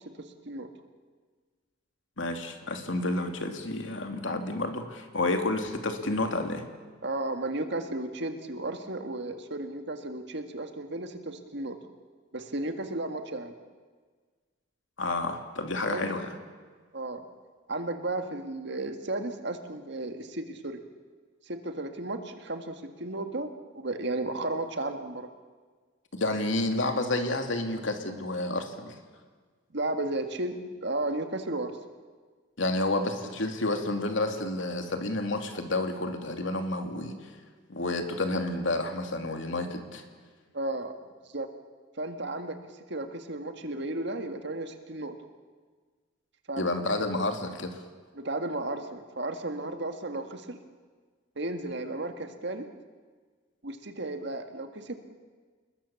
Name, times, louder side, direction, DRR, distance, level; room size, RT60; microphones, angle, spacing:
voice 1, 2.2-6.7 15.0-16.3 26.1-28.9 32.6-37.1 37.7-40.0 46.6-47.8, left 2 dB, 70° left, 5 dB, 2.7 m, -30 dB
voice 2, 7.0-11.8 12.3-13.6 15.9-16.1 16.9-17.2 17.7-20.8 21.5-25.3 29.7-31.8 40.5-40.9 41.3-41.5 42.0-42.6 42.9-45.1 46.5-46.7 47.0-47.1 48.2-50.6 51.4-52.7 53.6-55.0, right 2 dB, 60° right, 6 dB, 1.9 m, -34 dB
28.0 x 21.0 x 7.2 m, 1.5 s
head